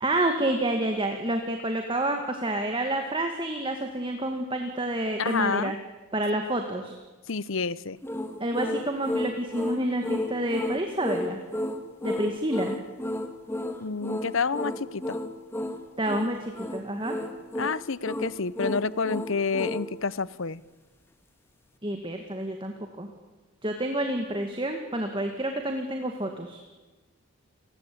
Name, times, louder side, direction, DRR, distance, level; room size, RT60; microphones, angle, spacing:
voice 1, 0.0-5.8 6.1-7.0 8.4-11.4 12.0-12.7 16.0-17.2 21.8-23.1 23.6-26.6, right 1 dB, 20° right, 4 dB, 2.0 m, -29 dB
voice 2, 5.2-5.7 7.3-8.0 13.8-15.2 17.6-20.6, left 5 dB, 60° left, 19 dB, 0.8 m, -29 dB
sound 1, 8.0-19.9, left 1 dB, 10° left, 1.9 m, -32 dB
29.5 x 20.0 x 8.6 m, 1.2 s
head